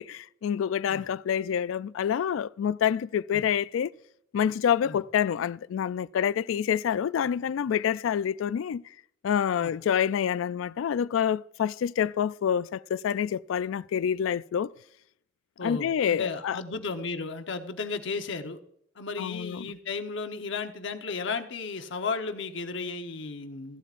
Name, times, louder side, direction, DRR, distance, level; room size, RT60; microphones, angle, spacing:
voice 1, 0.0-3.9 4.3-8.8 9.2-14.7 15.6-16.6 19.2-19.6, left 8 dB, 90° left, 0.3 m, -27 dB
voice 2, 15.6-18.6 19.0-23.8, left 4 dB, 65° left, 1.0 m, -34 dB
15.5 x 11.5 x 2.5 m
head